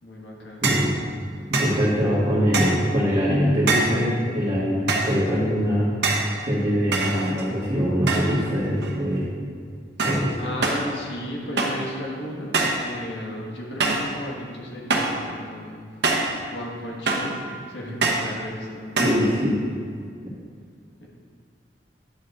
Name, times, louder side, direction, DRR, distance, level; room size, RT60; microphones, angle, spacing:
voice 1, 0.0-0.7 10.4-15.9 16.5-19.5 21.0-21.1, equal, 90° left, -2 dB, 1.6 m, -34 dB
voice 2, 0.6-0.9 1.5-5.9 6.4-9.2 10.0-10.3 19.0-19.6, equal, 35° right, -10 dB, 1.4 m, -23 dB
sound 1, 0.6-0.9 1.5-1.8 2.5-2.9 3.7-4.0 4.9-5.2 6.0-6.3 6.9-7.6 8.1-8.5 8.8-9.2 10.0-10.3 10.6-10.9 11.6-11.9 12.5-12.9 13.8-14.1 14.9-15.2 16.0-16.4 17.1-17.4 18.0-18.3 19.0-19.3, right 3 dB, 65° right, 0.9 m, -24 dB
10.0 x 6.9 x 2.5 m, 2.1 s
head